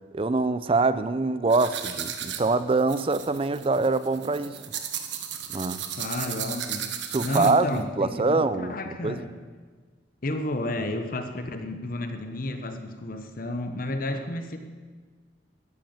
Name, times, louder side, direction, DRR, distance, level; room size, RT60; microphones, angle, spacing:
voice 1, 0.1-4.6 5.5-5.8 7.1-8.8 9.0-9.2, right 3 dB, 30° right, 14 dB, 0.5 m, -24 dB
sound 1, 1.5-7.8, right 9 dB, 80° right, 1.3 m, -35 dB
voice 2, 6.0-6.9 7.2-9.3 10.2-14.6, left 1 dB, 50° left, 7 dB, 1.0 m, -31 dB
13.0 x 10.5 x 7.3 m, 1.5 s
head